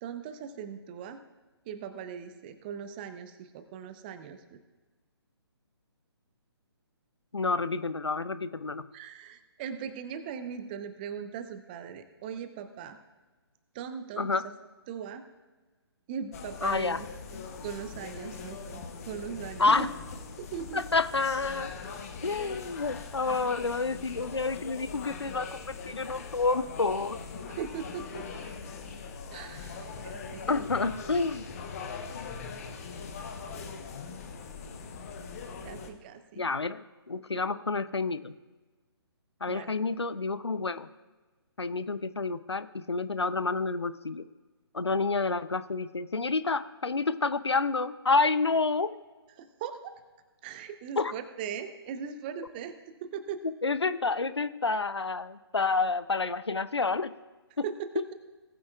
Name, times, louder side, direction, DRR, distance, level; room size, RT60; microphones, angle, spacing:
voice 1, 0.0-1.2 1.7-4.6 8.9-13.0 13.7-14.3 14.9-15.3 16.1-17.1 17.6-19.9 20.4-20.8 27.5-28.2 29.3-30.7 35.6-36.4 39.5-39.8 49.4-49.9 50.4-52.7 53.1-53.4 57.6-58.1, right 7 dB, 20° right, 10 dB, 0.6 m, -39 dB
voice 2, 7.3-8.9 14.2-14.4 16.6-17.0 19.6-19.9 20.7-21.7 22.2-27.2 30.5-31.6 36.4-38.3 39.4-40.9 41.6-44.2 44.7-48.9 51.0-51.1 53.6-57.1, left 3 dB, 80° left, 14 dB, 0.5 m, -29 dB
sound 1, 16.3-35.9, left 5 dB, 35° left, 0.9 m, -41 dB
19.0 x 8.5 x 2.3 m, 1.3 s
figure-of-eight pair, 135°, 14 cm